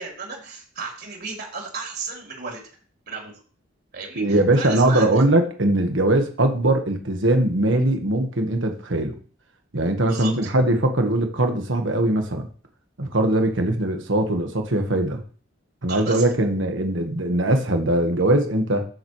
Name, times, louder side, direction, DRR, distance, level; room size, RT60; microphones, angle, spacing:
voice 1, 0.0-2.6 3.1-3.4 3.9-5.2 10.1-10.5 15.9-16.2, right 4 dB, 55° right, -1 dB, 4.1 m, -34 dB
voice 2, 4.2-9.2 9.7-12.5 13.0-15.2 15.8-18.9, right 1 dB, 70° right, 5 dB, 1.6 m, -21 dB
14.0 x 7.4 x 3.3 m, 0.42 s
head